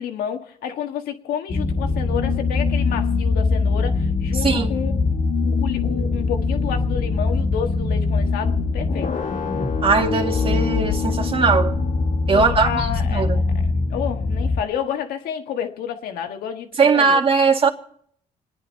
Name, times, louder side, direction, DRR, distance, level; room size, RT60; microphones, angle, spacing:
voice 1, 0.0-4.9 5.4-9.1 12.3-13.6 13.9-17.2, left 9 dB, 85° left, 1.6 m, -30 dB
sound 1, 1.5-14.6, left 3 dB, 60° left, 1.9 m, -22 dB
voice 2, 9.8-11.8 12.3-13.4 16.8-17.7, right 5 dB, 40° right, 2.1 m, -19 dB
29.0 x 10.0 x 4.2 m
cardioid pair, 90°, 15 cm